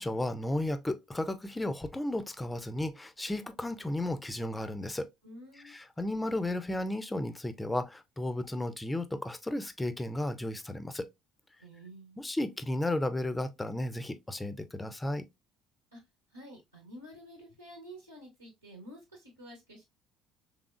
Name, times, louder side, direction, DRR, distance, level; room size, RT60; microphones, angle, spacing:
voice 1, 0.0-5.1 5.6-11.1 12.2-15.2, left 1 dB, 10° left, 0.6 m, -34 dB
voice 2, 5.2-5.7 11.6-12.2 15.9-16.0 16.3-19.8, equal, 85° right, 1.2 m, -50 dB
3.6 x 3.5 x 2.3 m
figure-of-eight pair, 55°, 0 cm